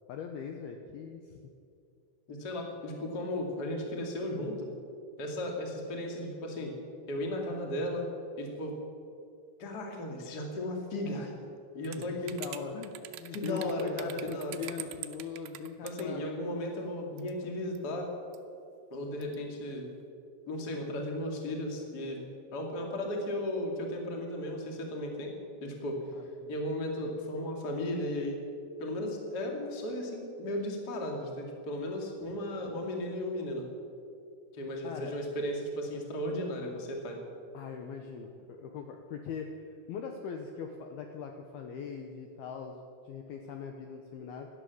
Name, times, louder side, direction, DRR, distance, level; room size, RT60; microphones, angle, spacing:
voice 1, 0.1-1.5 12.0-16.7 26.1-26.5 34.8-35.1 37.5-44.5, left 6 dB, 85° left, 4 dB, 2.2 m, -41 dB
voice 2, 2.3-4.7 5.2-6.7 7.1-8.1 8.4-8.7 9.6-11.3 11.7-12.4 13.3-14.6 15.8-18.1 18.9-19.9 20.5-22.2 22.5-25.3 25.6-26.0 26.5-28.4 28.8-33.6 34.5-37.2, left 1 dB, 40° left, 1 dB, 1.4 m, -35 dB
sound 1, 11.8-16.0 17.2-17.5 17.8-17.9 18.3-18.4 19.2-19.4, right 14 dB, 90° right, 2.3 m, -44 dB
17.0 x 11.5 x 7.0 m, 2.5 s
omnidirectional pair, 5.5 m